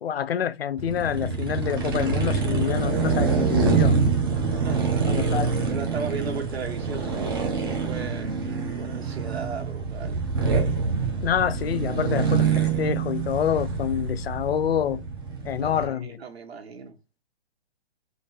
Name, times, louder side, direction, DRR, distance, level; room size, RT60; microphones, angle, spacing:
voice 1, 0.0-4.0 5.0-5.5 11.2-15.0 15.4-16.2, left 9 dB, 75° left, 0.6 m, -27 dB
sound 1, 0.8-15.9, right 5 dB, 20° right, 0.7 m, -26 dB
voice 2, 4.6-8.3 8.8-10.2 15.6-17.0, right 5 dB, 85° right, 1.7 m, -37 dB
3.8 x 3.4 x 4.0 m
hypercardioid pair, 180°, 31 cm